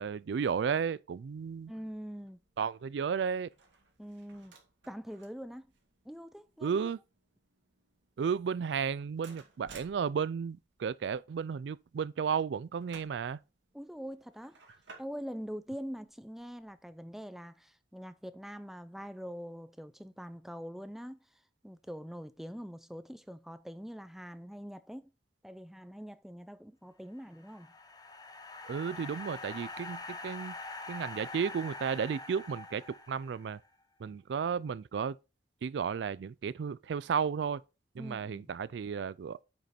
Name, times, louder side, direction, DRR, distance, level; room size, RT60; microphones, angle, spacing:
voice 1, 0.0-1.7 2.6-3.5 6.6-7.0 8.2-13.4 28.6-30.6 30.9-33.6 34.0-35.2 35.6-37.6 37.9-39.4, right 6 dB, 65° right, 0.3 m, -33 dB
sound 1, 1.4-16.9, right 4 dB, 85° right, 2.2 m, -60 dB
voice 2, 1.7-2.4 4.0-4.5 4.9-5.7 6.1-6.8 13.7-14.6 15.0-21.2 21.6-25.1 25.4-27.7 38.0-38.5, equal, ahead, 0.5 m, -44 dB
sound 2, 27.2-33.6, left 3 dB, 20° left, 1.1 m, -44 dB
9.1 x 5.3 x 4.3 m
head